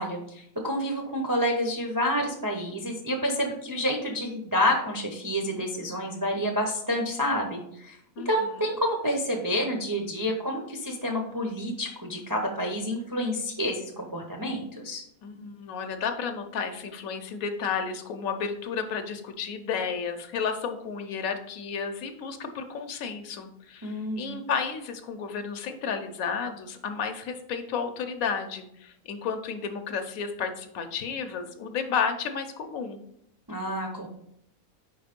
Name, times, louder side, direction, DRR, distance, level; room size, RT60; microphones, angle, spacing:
voice 1, 0.0-8.0 8.2-15.0 23.8-24.3 33.5-34.1, equal, 30° right, 1 dB, 0.4 m, -29 dB
voice 2, 15.2-33.0, left 6 dB, 70° left, 6 dB, 1.1 m, -32 dB
5.0 x 3.9 x 5.1 m, 0.75 s
omnidirectional pair, 1.5 m